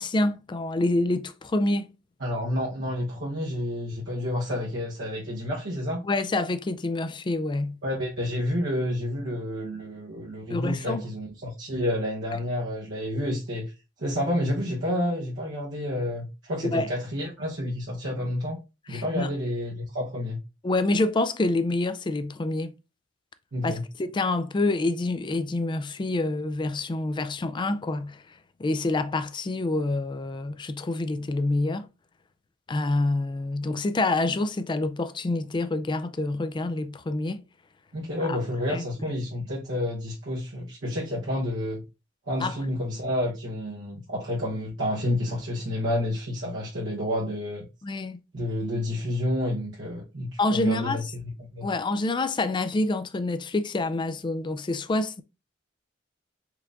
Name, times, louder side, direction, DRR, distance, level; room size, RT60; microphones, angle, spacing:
voice 1, 0.0-1.9 6.0-7.8 10.5-11.0 16.6-16.9 18.9-19.3 20.6-22.7 23.6-28.2 28.6-31.9 32.7-37.4 38.2-38.4 38.7-38.9 42.4-42.6 47.8-48.2 50.4-51.0 51.6-55.2, left 2 dB, 25° left, 0.4 m, -27 dB
voice 2, 2.2-6.0 7.8-13.7 14.0-18.6 18.9-20.4 23.5-23.8 37.9-41.8 42.3-47.7 48.3-51.0 51.4-51.7, left 1 dB, 70° right, 1.1 m, -29 dB
4.6 x 2.6 x 3.4 m
head